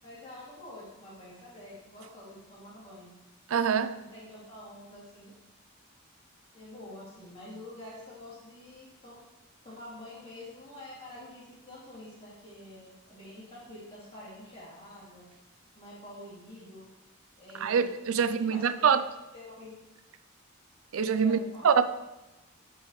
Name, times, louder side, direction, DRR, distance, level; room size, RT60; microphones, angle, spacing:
voice 1, 0.0-3.1 3.9-5.3 6.5-9.2 9.6-15.3 15.7-16.8 17.4-19.0 19.3-19.7 21.2-21.8, left 1 dB, 25° left, 2.5 m, -47 dB
voice 2, 3.5-4.0 17.6-19.0 20.9-21.4 21.6-21.8, right 6 dB, 75° right, 0.4 m, -24 dB
10.0 x 4.6 x 3.1 m
head